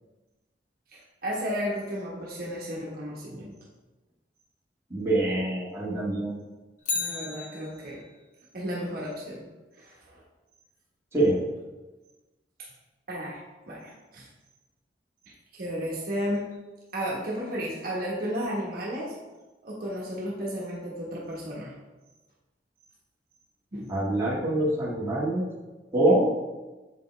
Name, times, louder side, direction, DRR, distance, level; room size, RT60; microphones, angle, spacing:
voice 1, 0.9-3.5 6.9-8.0 8.5-9.4 9.8-10.2 13.1-14.3 15.5-16.5 16.9-19.1 19.6-21.7 23.7-23.9, equal, 55° right, -5 dB, 1.3 m, -33 dB
voice 2, 4.9-6.3 11.1-11.4 23.9-25.4 25.9-26.3, right 1 dB, 15° right, -8 dB, 1.8 m, -24 dB
Bicycle, 6.8-8.2 16.5-16.6, left 4 dB, 45° left, 0.8 m, -34 dB
7.6 x 5.3 x 3.3 m, 1.2 s
head